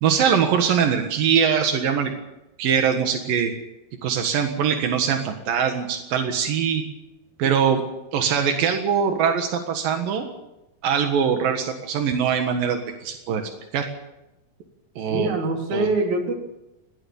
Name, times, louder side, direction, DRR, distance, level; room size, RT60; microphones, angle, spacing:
voice 1, 0.0-2.1 2.6-3.5 4.0-6.8 7.4-7.8 8.1-10.3 10.8-13.4 13.7-13.9 15.0-15.4 15.7-15.9, right 7 dB, 85° right, 5 dB, 3.3 m, -22 dB
voice 2, 15.1-16.3, right 2 dB, 60° right, 3 dB, 4.3 m, -24 dB
21.5 x 18.0 x 7.1 m, 0.92 s
omnidirectional pair, 3.9 m